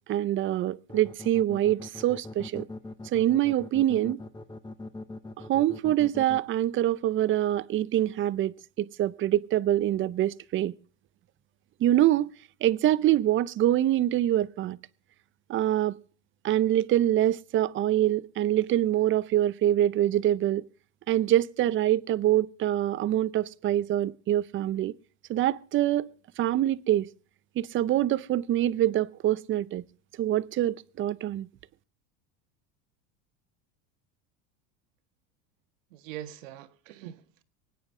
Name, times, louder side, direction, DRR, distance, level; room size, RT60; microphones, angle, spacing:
voice 1, 0.1-2.7 3.0-4.2 5.5-8.5 8.8-10.7 11.8-12.3 12.6-14.8 15.5-16.0 16.4-20.6 21.1-24.9 25.3-26.1 26.4-27.1 27.6-29.8 30.2-31.5, right 13 dB, 30° right, 0.6 m, -25 dB
sound 1, 0.9-6.4, left 2 dB, 10° left, 0.9 m, -41 dB
voice 2, 35.9-37.4, right 11 dB, 90° right, 1.6 m, -43 dB
24.5 x 9.5 x 3.7 m
supercardioid pair, 130°, 38 cm